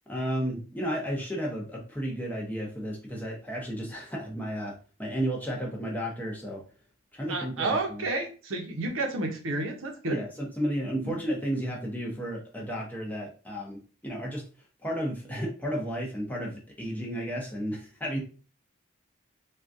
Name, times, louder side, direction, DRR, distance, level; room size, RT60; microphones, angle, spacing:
voice 1, 0.1-4.7 5.0-6.6 7.1-8.0 10.1-14.5 14.8-18.2, equal, 10° left, -3 dB, 0.7 m, -33 dB
voice 2, 7.3-10.2 11.0-11.1, right 2 dB, 80° right, 3 dB, 0.7 m, -30 dB
3.7 x 2.4 x 2.5 m, 0.36 s
head